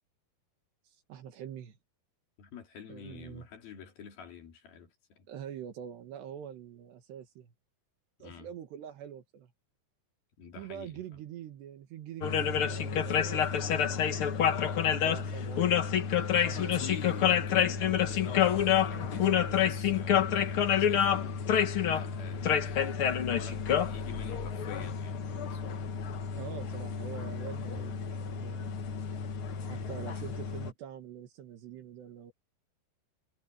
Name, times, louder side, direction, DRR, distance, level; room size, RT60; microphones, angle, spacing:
voice 1, 0.9-1.8 2.9-3.5 5.3-7.5 8.2-9.5 10.6-14.5 14.9-16.0 16.3-16.9 26.4-28.8 29.7-32.3, right 9 dB, 80° right, 4.0 m, -45 dB
voice 2, 2.4-5.3 8.2-8.5 10.4-11.0 16.2-21.5 21.9-22.6 23.3-25.8 27.7-27.8 29.7-29.9, left 6 dB, 60° left, 5.7 m, -47 dB
sound 1, 12.2-30.7, left 8 dB, 80° left, 1.2 m, -29 dB
omnidirectional pair, 4.9 m